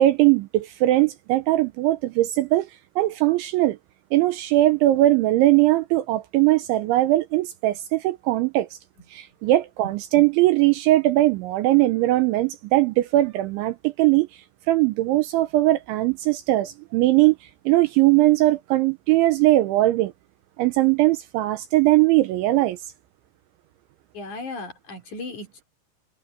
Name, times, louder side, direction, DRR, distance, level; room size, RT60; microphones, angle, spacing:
voice 1, 0.0-2.7 3.0-3.8 4.1-8.7 9.1-14.3 14.7-17.4 17.7-20.1 20.6-22.8, right 16 dB, 80° right, 2.9 m, -20 dB
voice 2, 24.1-25.6, left 2 dB, 40° left, 4.8 m, -36 dB
omnidirectional pair, 5.9 m